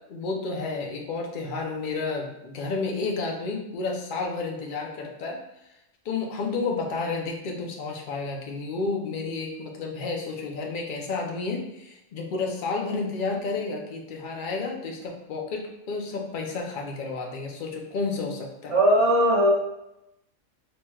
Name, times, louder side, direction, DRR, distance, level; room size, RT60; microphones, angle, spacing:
voice 1, 0.1-5.4 6.0-18.8, left 4 dB, 50° left, 1 dB, 0.6 m, -31 dB
voice 2, 18.7-19.5, equal, 45° right, -4 dB, 0.4 m, -19 dB
4.4 x 3.1 x 2.3 m, 0.87 s
omnidirectional pair, 1.4 m